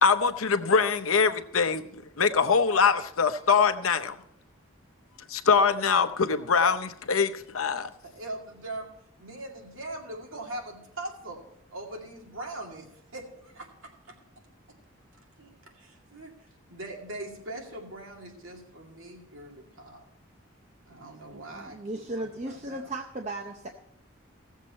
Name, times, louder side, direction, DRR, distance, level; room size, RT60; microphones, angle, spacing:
voice 1, 0.0-4.2 5.3-7.9, left 5 dB, 85° left, 10 dB, 0.8 m, -23 dB
voice 2, 8.0-8.9 9.2-11.4 11.7-14.2 14.7-14.8 15.4-16.3 16.7-20.1 20.9-22.8, right 1 dB, 75° right, 1 dB, 2.2 m, -41 dB
voice 3, 21.3-23.7, right 2 dB, 35° right, 3 dB, 0.7 m, -36 dB
17.0 x 7.3 x 4.3 m, 0.73 s
head